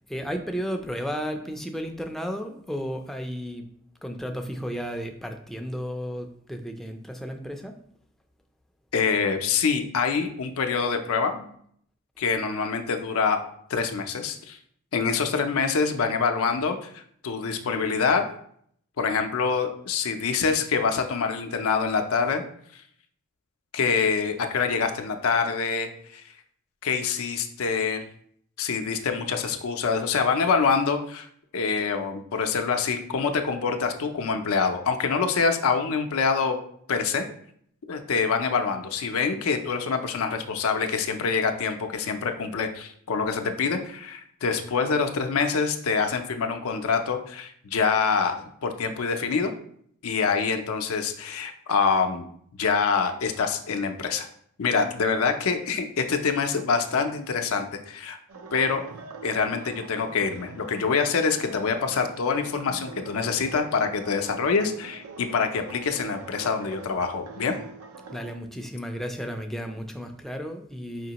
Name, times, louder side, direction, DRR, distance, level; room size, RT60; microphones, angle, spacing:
voice 1, 0.1-3.7 4.0-7.8 68.1-71.1, equal, ahead, 4 dB, 0.4 m, -33 dB
voice 2, 8.9-11.5 12.2-13.4 13.7-14.6 14.9-18.2 19.0-22.4 23.7-26.2 26.8-28.0 28.6-31.3 31.5-36.6 36.9-37.2 37.9-49.5 50.0-52.2 52.6-54.3 54.6-58.2 58.5-58.8 59.2-67.6, left 5 dB, 75° left, 5 dB, 0.5 m, -25 dB
sound 1, 58.3-68.3, right 3 dB, 90° right, 0.5 m, -43 dB
5.1 x 3.0 x 2.9 m, 0.65 s
head